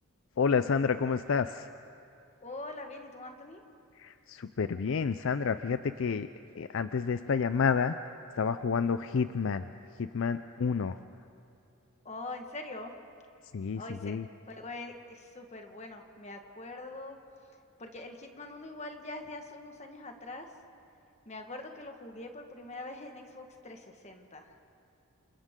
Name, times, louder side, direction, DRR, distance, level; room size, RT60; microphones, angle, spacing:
voice 1, 0.4-1.7 4.0-6.3 6.5-7.9 8.4-9.6 10.0-11.0 13.5-14.3, left 5 dB, 60° left, 11 dB, 0.4 m, -29 dB
voice 2, 2.4-3.6 12.0-12.9 13.8-14.1 14.5-17.2 17.8-20.5 21.2-24.6, left 2 dB, 30° left, 4 dB, 1.5 m, -43 dB
28.5 x 28.0 x 3.7 m, 2.6 s
head